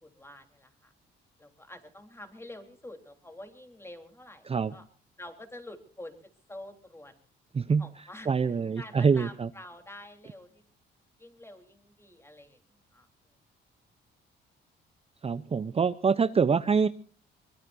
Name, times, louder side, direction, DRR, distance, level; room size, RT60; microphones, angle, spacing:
voice 1, 0.0-0.9 1.4-4.9 5.2-6.2 6.5-7.2 7.8-10.6 11.2-13.1, left 1 dB, 10° left, 5 dB, 3.7 m, -47 dB
voice 2, 8.3-9.5 15.2-16.9, right 5 dB, 30° right, 13 dB, 0.7 m, -25 dB
23.5 x 21.0 x 2.7 m, 0.39 s
cardioid pair, 90°, 20 cm